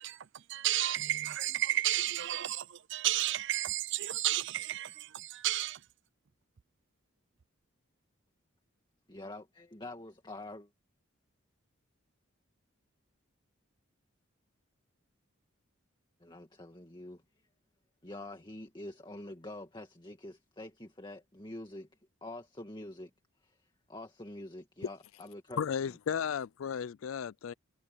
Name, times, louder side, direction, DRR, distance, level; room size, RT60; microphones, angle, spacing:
voice 1, 0.0-5.8, right 13 dB, 60° right, 0.6 m, -32 dB
voice 2, 9.1-10.7 16.2-17.2 18.0-21.9 22.2-23.1 23.4-25.7, left 1 dB, 20° left, 2.1 m, -46 dB
voice 3, 25.6-27.5, left 7 dB, 70° left, 0.4 m, -34 dB
head